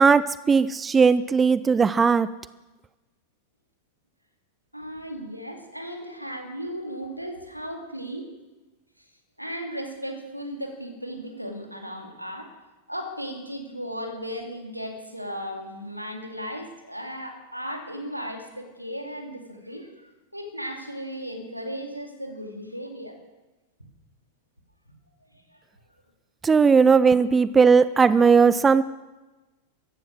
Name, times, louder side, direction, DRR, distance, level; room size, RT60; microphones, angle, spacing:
voice 1, 0.0-2.3 26.4-28.8, right 5 dB, 15° right, 17 dB, 0.4 m, -18 dB
voice 2, 4.7-8.3 9.4-12.5 12.9-23.2 25.3-25.4 28.1-28.3, equal, 90° right, 4 dB, 2.4 m, -36 dB
15.0 x 13.5 x 6.4 m, 1.1 s
figure-of-eight pair, 90°, 0 cm